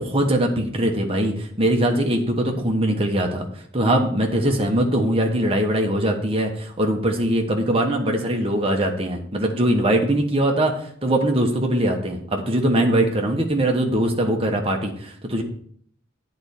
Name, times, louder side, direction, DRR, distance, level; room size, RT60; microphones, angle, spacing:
voice 1, 0.0-3.4 3.7-10.7 11.0-15.4, right 1 dB, 25° right, 2 dB, 1.2 m, -21 dB
8.8 x 4.3 x 7.0 m, 0.62 s
head